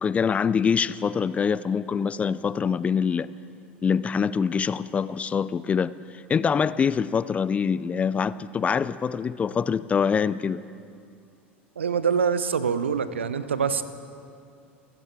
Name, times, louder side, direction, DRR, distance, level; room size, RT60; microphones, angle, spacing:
voice 1, 0.0-3.3 3.8-10.6, left 6 dB, 20° left, 18 dB, 0.3 m, -25 dB
voice 2, 11.8-13.8, right 6 dB, 75° right, 14 dB, 0.7 m, -25 dB
28.0 x 16.0 x 3.2 m, 2.4 s
figure-of-eight pair, 75°, 7 cm